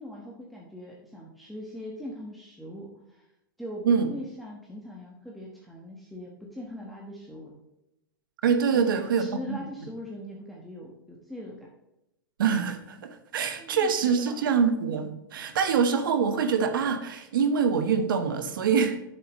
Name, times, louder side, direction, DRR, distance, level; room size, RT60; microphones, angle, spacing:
voice 1, 0.0-3.3 3.6-3.8 4.1-7.6 8.7-11.7 13.6-14.4, left 1 dB, ahead, -3 dB, 1.3 m, -41 dB
voice 2, 8.4-9.6 12.4-19.0, right 6 dB, 75° right, 7 dB, 1.2 m, -25 dB
9.1 x 6.8 x 3.1 m, 0.89 s
hypercardioid pair, 115°, 11 cm